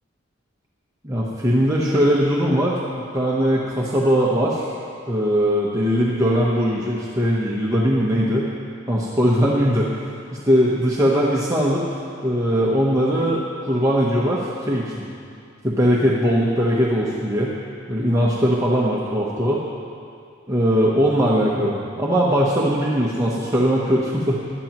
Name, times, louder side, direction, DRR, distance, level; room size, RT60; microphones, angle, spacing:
voice 1, 1.0-2.8 3.1-4.7 5.1-8.5 8.9-9.9 10.4-11.8 12.2-15.0 15.6-17.5 17.9-19.6 20.5-24.4, equal, 15° right, -5 dB, 0.9 m, -20 dB
18.0 x 11.5 x 3.0 m, 2.4 s
head